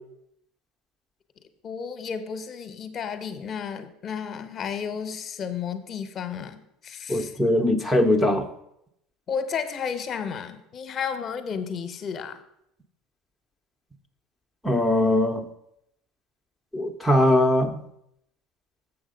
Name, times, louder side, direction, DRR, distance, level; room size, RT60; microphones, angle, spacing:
voice 1, 1.6-7.4 9.3-12.4, left 6 dB, 40° left, 10 dB, 0.8 m, -32 dB
voice 2, 7.1-8.5 14.6-15.4 16.7-17.8, left 1 dB, ahead, 0 dB, 0.6 m, -21 dB
7.1 x 6.1 x 5.1 m, 0.77 s
supercardioid pair, 110°, 0 cm